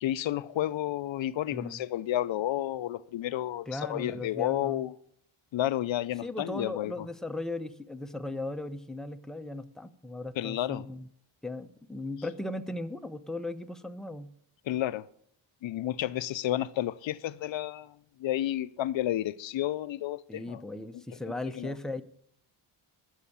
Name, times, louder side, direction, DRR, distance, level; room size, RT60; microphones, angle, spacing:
voice 1, 0.0-4.9 5.5-7.1 10.4-10.8 14.7-15.1 15.6-17.9 18.2-20.6 21.5-21.7, left 13 dB, 65° left, 0.6 m, -31 dB
voice 2, 1.5-1.8 3.7-4.9 6.2-11.1 11.4-14.3 20.3-22.0, left 2 dB, ahead, 0.7 m, -37 dB
11.5 x 6.5 x 8.5 m
cardioid pair, 90°, 49 cm